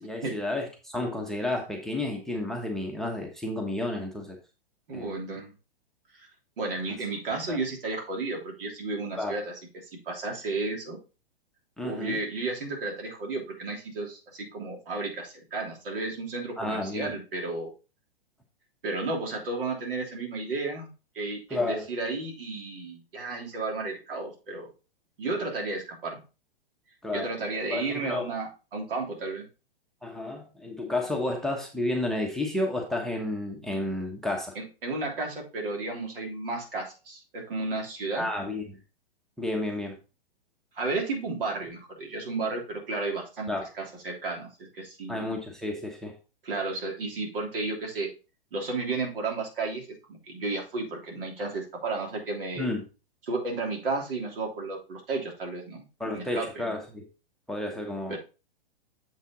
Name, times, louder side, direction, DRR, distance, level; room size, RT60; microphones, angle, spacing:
voice 1, 0.0-4.4 4.9-5.1 7.5-7.6 9.2-9.4 11.8-12.2 16.6-17.1 21.5-21.8 27.0-27.3 27.7-28.3 30.0-34.5 38.1-38.8 39.4-40.0 43.5-43.7 45.1-46.1 52.6-52.8 56.0-57.1 57.5-58.2, left 1 dB, ahead, 2 dB, 1.1 m, -31 dB
voice 2, 4.9-5.5 6.1-6.3 6.6-9.5 10.0-11.0 11.8-17.7 18.8-20.9 21.1-24.7 25.2-26.2 27.1-29.4 34.5-38.3 40.7-45.2 46.4-48.1 48.5-52.7 53.3-55.8 56.1-56.6 58.1-58.2, right 3 dB, 65° right, 0 dB, 3.2 m, -33 dB
7.3 x 5.7 x 3.8 m, 0.31 s
hypercardioid pair, 115°, 30 cm